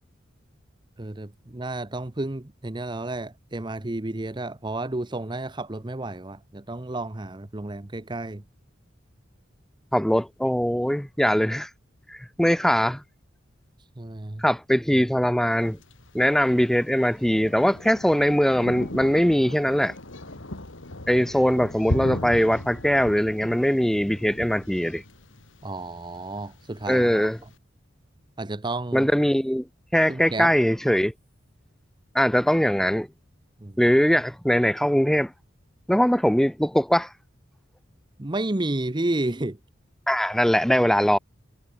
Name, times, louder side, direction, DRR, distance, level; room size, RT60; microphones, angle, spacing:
voice 1, 1.0-8.4 14.0-14.4 25.6-27.3 28.4-29.1 30.1-30.5 33.6-33.8 38.2-39.6, right 2 dB, 25° right, 0.8 m, -31 dB
voice 2, 9.9-11.7 12.1-13.0 14.4-15.8 16.1-19.9 21.1-25.0 26.9-27.4 28.9-29.6 29.9-31.1 32.1-33.1 33.8-35.3 35.9-37.1 40.1-41.2, equal, ahead, 0.5 m, -21 dB
Thunder, 15.6-27.5, left 1 dB, 85° left, 2.8 m, -37 dB
head